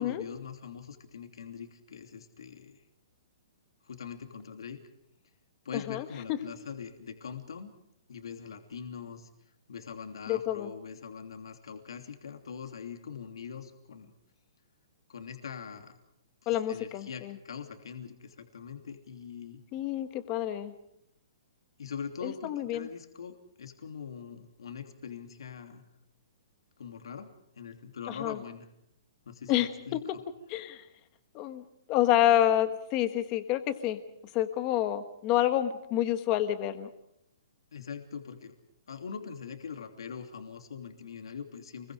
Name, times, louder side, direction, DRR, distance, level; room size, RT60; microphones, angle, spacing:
voice 1, 0.0-2.8 3.8-4.8 5.6-7.7 8.1-9.3 9.7-14.1 15.1-16.0 16.4-19.6 21.8-25.8 26.8-28.7 29.2-30.2 37.7-38.5 38.9-41.9, left 6 dB, 75° left, 5 dB, 3.0 m, -42 dB
voice 2, 5.7-6.4 10.3-10.7 16.5-17.4 19.7-20.7 22.2-22.9 28.1-28.4 29.5-30.0 30.5-30.8 31.3-34.0 34.3-36.9, left 12 dB, 20° left, 10 dB, 1.3 m, -28 dB
29.0 x 22.0 x 5.0 m, 0.80 s
hypercardioid pair, 180°, 3 cm